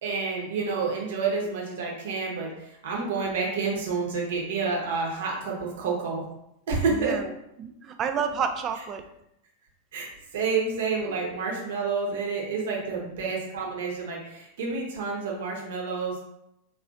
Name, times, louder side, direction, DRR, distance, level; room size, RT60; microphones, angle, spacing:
voice 1, 0.0-6.2 6.7-7.2 9.9-10.1 10.3-16.2, right 4 dB, 55° right, -1 dB, 1.0 m, -29 dB
voice 2, 6.9-7.3 7.6-9.0 12.8-13.0, right 6 dB, 30° right, 7 dB, 0.4 m, -30 dB
3.8 x 2.9 x 2.5 m, 0.82 s
figure-of-eight pair, 90°, 0 cm